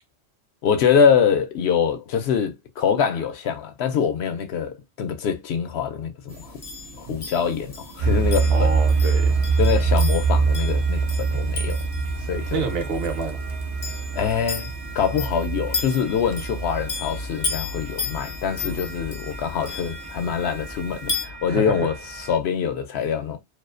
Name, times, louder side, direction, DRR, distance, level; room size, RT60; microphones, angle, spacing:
voice 1, 0.6-6.6 6.9-8.7 9.6-11.8 12.3-12.6 14.1-23.4, left 7 dB, 70° left, 0.8 m, -24 dB
sound 1, 6.3-21.3, left 4 dB, 40° left, 0.6 m, -35 dB
sound 2, 8.0-22.4, right 4 dB, 45° right, 0.4 m, -25 dB
voice 2, 8.5-9.4 12.5-13.4 18.6-19.0 21.5-21.9, right 5 dB, 65° right, 0.8 m, -29 dB
2.4 x 2.3 x 2.3 m
omnidirectional pair, 1.1 m